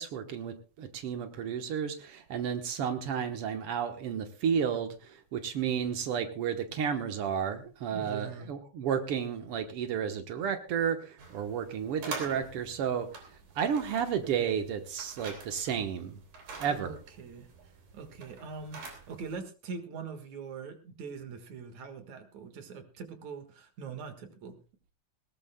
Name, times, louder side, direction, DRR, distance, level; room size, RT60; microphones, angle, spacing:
voice 1, 0.0-13.1 13.5-16.2 16.6-16.9, right 7 dB, 90° right, 6 dB, 1.2 m, -32 dB
voice 2, 7.9-8.5 16.7-17.5 17.9-24.6, right 5 dB, 55° right, 7 dB, 2.6 m, -42 dB
sound 1, 11.2-19.4, right 4 dB, 75° right, 5.1 m, -46 dB
20.5 x 18.0 x 2.2 m, 0.34 s
omnidirectional pair, 4.3 m